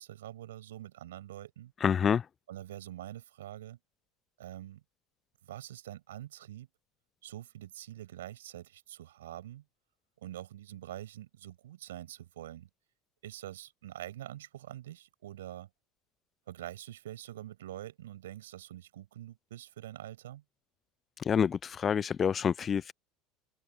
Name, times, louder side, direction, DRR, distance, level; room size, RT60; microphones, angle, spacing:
voice 1, 0.0-1.7 2.5-3.8 4.4-4.8 5.4-6.7 7.2-9.6 10.2-12.7 13.2-15.7 16.5-20.4, right 13 dB, 80° right, 7.3 m, -45 dB
voice 2, 1.8-2.2 21.2-22.9, left 7 dB, 35° left, 0.4 m, -27 dB
hypercardioid pair, 75°, 0 cm